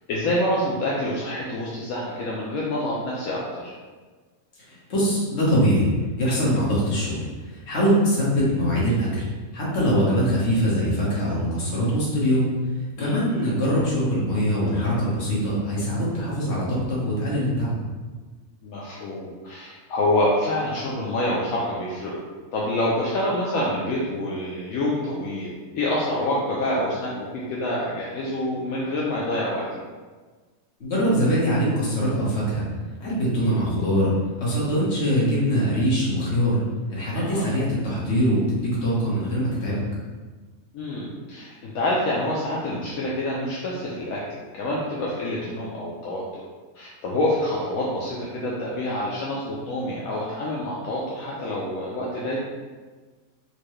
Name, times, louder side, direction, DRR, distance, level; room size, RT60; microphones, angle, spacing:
voice 1, 0.1-3.7 13.0-13.2 18.6-22.2 22.5-29.7 37.1-37.5 40.7-46.2 46.7-52.4, left 1 dB, 75° left, -5 dB, 1.0 m, -27 dB
voice 2, 4.7-5.9 6.2-9.3 9.5-12.5 13.0-17.7 30.8-32.6 33.0-34.1 34.4-36.6 36.9-39.8, equal, 50° left, -7 dB, 1.4 m, -23 dB
4.4 x 2.2 x 3.0 m, 1.4 s
omnidirectional pair, 1.5 m